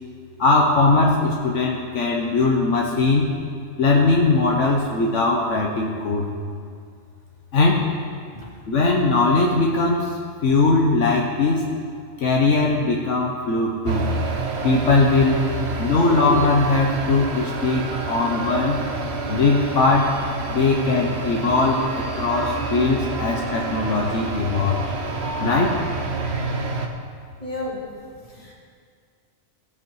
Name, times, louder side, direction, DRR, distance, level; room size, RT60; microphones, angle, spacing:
voice 1, 0.4-3.3 3.8-6.3 7.5-7.8 8.7-11.7 12.2-14.1 14.6-15.4 15.8-18.8 19.3-20.1 20.5-24.8 25.4-25.8, left 3 dB, 70° left, -1 dB, 1.3 m, -20 dB
sound 1, 13.8-26.9, right 3 dB, 60° right, 1.1 m, -28 dB
voice 2, 15.6-16.1 27.4-27.8 28.4-28.5, left 1 dB, 25° left, -4 dB, 2.4 m, -34 dB
17.0 x 7.6 x 4.7 m, 2.1 s
omnidirectional pair, 1.3 m